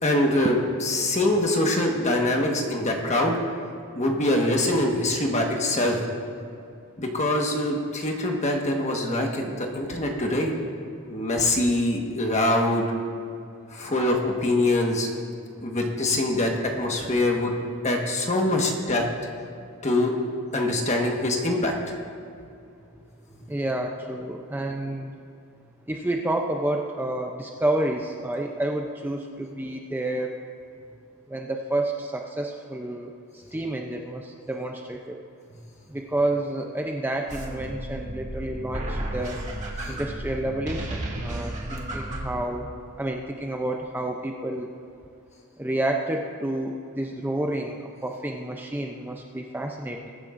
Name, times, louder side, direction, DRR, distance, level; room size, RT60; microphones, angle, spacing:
voice 1, 0.0-3.4 3.9-6.1 7.0-10.5 11.1-12.9 13.7-15.1 15.6-16.5 16.8-17.5 17.8-19.0 19.8-20.1 20.5-21.7 39.8-40.0 41.1-41.2, left 1 dB, 30° left, 1 dB, 1.4 m, -24 dB
voice 2, 23.5-25.1 25.9-30.4 31.3-35.2 35.9-39.4 39.9-42.7 43.0-44.7 45.6-50.1, right 1 dB, 10° right, 1 dB, 0.5 m, -29 dB
sound 1, 37.3-42.4, right 1 dB, 35° right, 1.8 m, -33 dB
22.0 x 10.0 x 2.5 m, 2.6 s
head